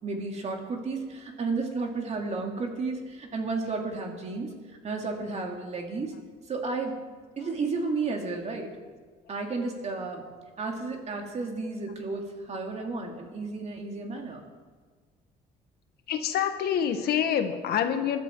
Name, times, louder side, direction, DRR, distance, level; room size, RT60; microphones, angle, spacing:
voice 1, 0.0-4.5 4.8-6.1 6.5-7.0 7.4-8.7 9.3-10.2 10.6-14.4, right 3 dB, 40° right, 2 dB, 2.8 m, -32 dB
voice 2, 16.1-18.2, left 9 dB, 70° left, 7 dB, 1.4 m, -26 dB
20.5 x 12.5 x 4.7 m, 1.5 s
cardioid pair, 110°, 17 cm